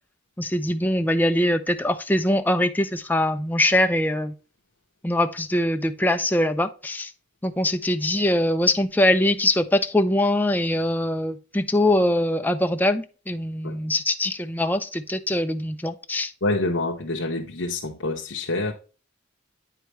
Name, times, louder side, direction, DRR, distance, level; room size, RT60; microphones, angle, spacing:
voice 1, 0.4-4.3 5.0-7.1 7.4-16.3, left 1 dB, 10° left, 0.5 m, -22 dB
voice 2, 16.4-18.7, left 2 dB, 70° left, 1.0 m, -26 dB
9.1 x 4.9 x 3.1 m
head